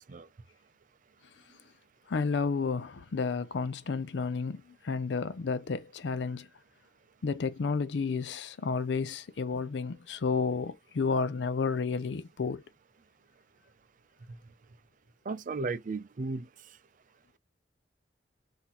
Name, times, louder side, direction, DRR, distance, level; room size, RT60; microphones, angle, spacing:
voice 1, 2.1-6.5 7.2-12.6, left 4 dB, 70° left, 0.5 m, -31 dB
voice 2, 15.3-16.5, right 3 dB, 45° right, 0.5 m, -34 dB
5.6 x 2.7 x 2.9 m
head